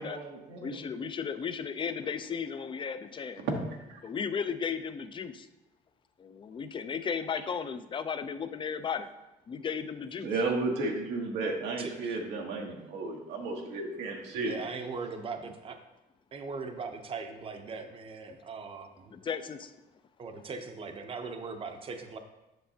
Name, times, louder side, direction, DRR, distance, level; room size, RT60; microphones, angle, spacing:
voice 1, 0.0-0.8 3.4-4.0 10.2-14.6, right 3 dB, 90° right, 1 dB, 1.2 m, -33 dB
voice 2, 0.6-3.4 4.0-5.5 6.2-9.1 9.5-10.3 19.1-19.7, left 6 dB, 30° left, 11 dB, 0.4 m, -35 dB
voice 3, 11.8-12.2 14.3-15.8 16.3-19.1 20.2-22.2, right 4 dB, 35° right, 6 dB, 0.7 m, -40 dB
7.9 x 6.2 x 2.8 m, 0.97 s
cardioid pair, 110°, 17 cm